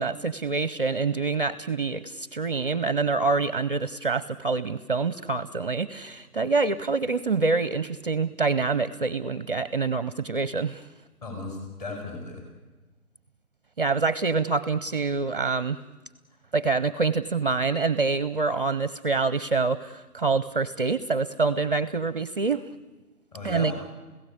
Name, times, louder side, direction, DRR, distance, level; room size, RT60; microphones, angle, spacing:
voice 1, 0.0-10.8 13.8-15.8 16.5-22.6 23.4-23.7, right 4 dB, 35° right, 16 dB, 0.7 m, -26 dB
voice 2, 11.2-12.4 23.3-23.7, left 3 dB, 25° left, 3 dB, 7.0 m, -35 dB
29.5 x 16.5 x 8.5 m, 1.2 s
figure-of-eight pair, 155°, 45 cm